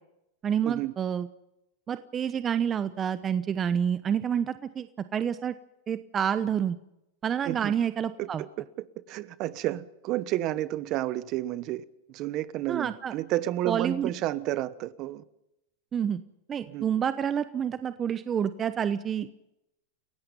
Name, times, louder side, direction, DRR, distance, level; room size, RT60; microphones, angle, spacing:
voice 1, 0.4-1.3 1.9-4.9 5.1-5.5 5.9-6.8 7.2-8.4 12.7-13.1 13.7-14.1 15.9-16.2 16.5-19.3, right 8 dB, 25° right, 0.9 m, -28 dB
voice 2, 8.2-15.2 16.7-16.8, right 14 dB, 45° right, 1.2 m, -31 dB
29.5 x 16.5 x 5.5 m
hypercardioid pair, 115°, 0 cm